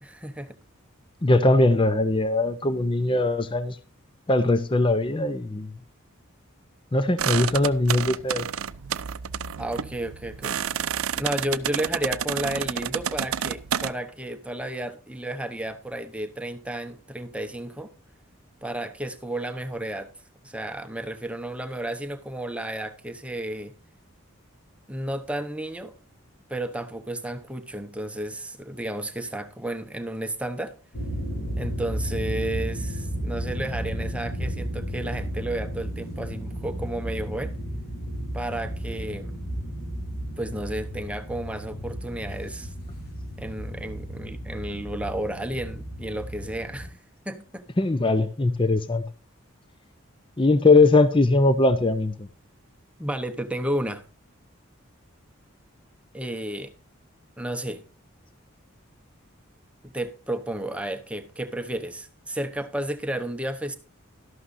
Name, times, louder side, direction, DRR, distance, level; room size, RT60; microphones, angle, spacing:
voice 1, 0.0-0.5 9.6-10.6 11.2-17.9 18.6-20.1 20.4-23.7 24.9-25.9 26.5-30.8 31.6-37.6 38.3-39.3 40.4-42.7 43.4-47.0 47.2-47.7 53.0-54.0 56.1-56.7 57.4-57.8 59.8-63.8, right 1 dB, 5° right, 0.8 m, -32 dB
voice 2, 1.2-3.8 4.3-5.7 6.9-8.4 47.8-49.0 50.4-52.1, left 2 dB, 25° left, 0.6 m, -20 dB
sound 1, 7.2-13.9, right 8 dB, 80° right, 0.5 m, -30 dB
sound 2, 30.9-46.9, equal, 45° left, 3.3 m, -33 dB
13.0 x 11.5 x 2.6 m
head